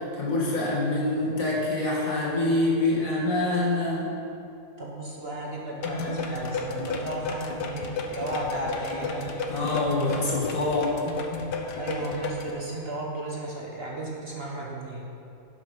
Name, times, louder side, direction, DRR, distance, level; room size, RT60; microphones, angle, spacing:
voice 1, 0.1-4.1 9.5-11.0, left 2 dB, 55° left, -5 dB, 2.5 m, -25 dB
voice 2, 4.8-9.4 11.8-15.2, right 1 dB, 40° right, -3 dB, 1.3 m, -34 dB
sound 1, 5.8-12.5, left 3 dB, 85° left, 1.5 m, -33 dB
11.0 x 7.4 x 5.4 m, 2.8 s
omnidirectional pair, 1.7 m